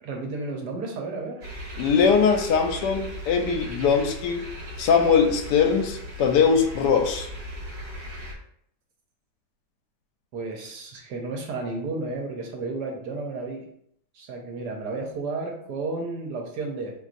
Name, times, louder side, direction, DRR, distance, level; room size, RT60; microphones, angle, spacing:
voice 1, 0.0-1.4 10.3-13.7 14.1-16.9, right 3 dB, 75° right, 1 dB, 1.2 m, -32 dB
Screaming frogs (+background arrangement), 1.4-8.3, equal, 50° right, 0.9 m, -37 dB
voice 2, 1.8-4.4 4.8-7.3, left 6 dB, 85° left, 5 dB, 1.2 m, -21 dB
5.2 x 2.9 x 2.5 m, 0.70 s
omnidirectional pair, 1.8 m